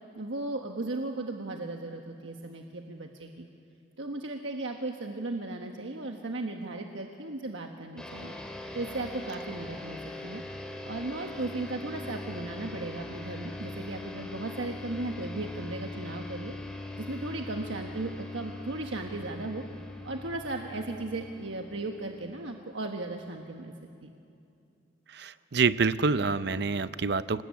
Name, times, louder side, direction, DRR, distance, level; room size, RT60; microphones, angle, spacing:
voice 1, 0.1-3.5 4.0-8.3 8.7-10.4 10.8-16.5 16.9-19.6 20.0-23.7 24.0-24.1, right 2 dB, 85° right, 3 dB, 1.3 m, -36 dB
sound 1, 8.0-22.8, left 2 dB, 5° left, 2.3 m, -41 dB
voice 2, 25.1-27.4, right 4 dB, 60° right, 15 dB, 0.6 m, -27 dB
27.0 x 19.5 x 8.4 m, 2.6 s
head